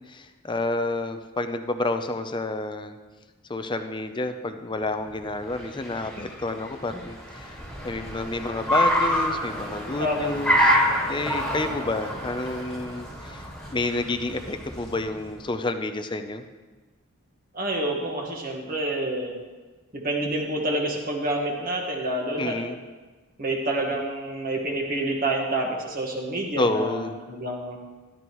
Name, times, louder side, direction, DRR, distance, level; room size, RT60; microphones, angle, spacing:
voice 1, 0.0-3.0 3.5-10.8 11.1-16.5 22.4-22.8 26.5-27.2, left 2 dB, 20° left, 8 dB, 0.6 m, -29 dB
Car, 5.1-15.4, equal, ahead, 1.9 m, -27 dB
voice 2, 17.5-19.3 19.9-22.5 23.4-27.8, right 1 dB, 40° right, 0 dB, 1.5 m, -28 dB
13.0 x 12.0 x 3.1 m, 1.3 s
head